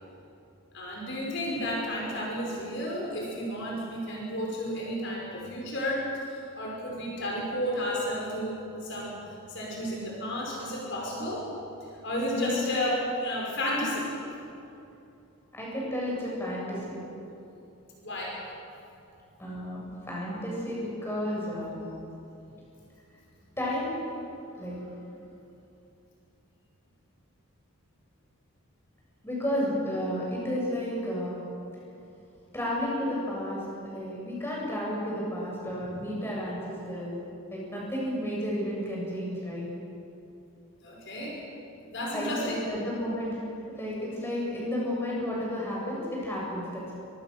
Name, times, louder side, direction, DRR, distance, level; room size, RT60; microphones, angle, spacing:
voice 1, 0.7-9.2 9.5-11.5 12.0-14.1 18.0-18.4 35.9-36.1 40.8-41.4 41.9-42.5, equal, 55° left, -3 dB, 5.5 m, -32 dB
voice 2, 12.2-12.8 15.5-17.0 19.4-21.8 23.6-24.2 24.5-24.9 29.2-31.4 32.5-37.2 37.5-39.7 42.1-43.4 43.7-46.9, left 1 dB, 10° left, -5 dB, 7.5 m, -32 dB
25.5 x 25.0 x 6.8 m, 2.8 s
head